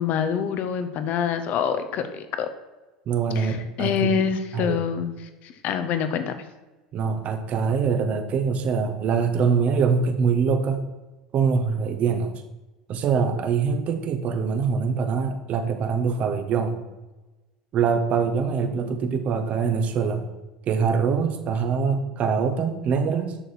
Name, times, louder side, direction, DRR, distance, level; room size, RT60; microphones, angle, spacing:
voice 1, 0.0-2.5 3.3-6.4 18.7-19.1, left 7 dB, 50° left, 9 dB, 1.1 m, -26 dB
voice 2, 3.1-4.2 4.5-4.8 6.9-10.8 11.3-12.3 12.9-16.8 17.7-20.3 20.7-23.3, right 6 dB, 45° right, 7 dB, 1.4 m, -24 dB
10.0 x 6.8 x 4.4 m, 1.2 s
hypercardioid pair, 80°, 3 cm